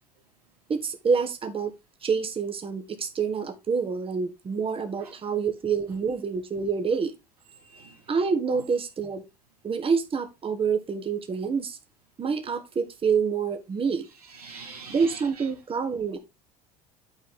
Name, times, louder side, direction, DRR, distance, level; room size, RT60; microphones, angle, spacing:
voice 1, 0.7-1.7 2.0-7.1 8.1-9.2 9.6-11.8 12.2-14.1 14.9-16.2, right 5 dB, 30° right, 1.4 m, -27 dB
voice 2, 7.5-8.1 8.5-8.6 14.0-15.5, right 4 dB, 85° right, 1.9 m, -45 dB
9.0 x 4.6 x 3.8 m
figure-of-eight pair, 65°, 19 cm